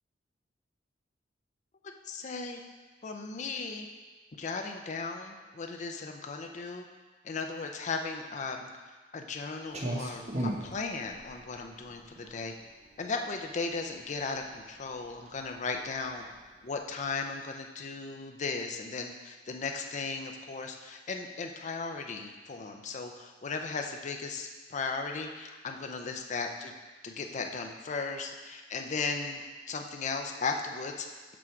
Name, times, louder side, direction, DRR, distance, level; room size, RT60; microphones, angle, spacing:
voice 1, 2.0-2.6 3.0-3.9 4.4-6.9 7.2-8.7 9.1-12.5 13.0-16.2 16.6-26.7 27.0-29.4 29.7-31.1, left 4 dB, 40° left, 4 dB, 0.5 m, -36 dB
Clock, 9.7-17.1, right 1 dB, 40° right, 0.9 m, -40 dB
6.1 x 6.1 x 4.5 m, 1.3 s
head